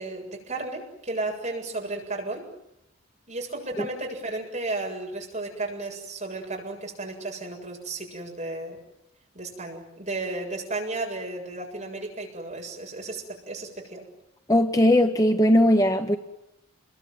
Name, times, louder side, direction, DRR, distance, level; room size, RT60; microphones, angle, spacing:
voice 1, 0.0-2.4 3.3-8.8 9.3-14.1, right 2 dB, 35° right, 0 dB, 7.6 m, -33 dB
voice 2, 14.5-16.2, left 1 dB, 15° left, 7 dB, 1.1 m, -19 dB
28.5 x 22.5 x 9.3 m, 0.82 s
head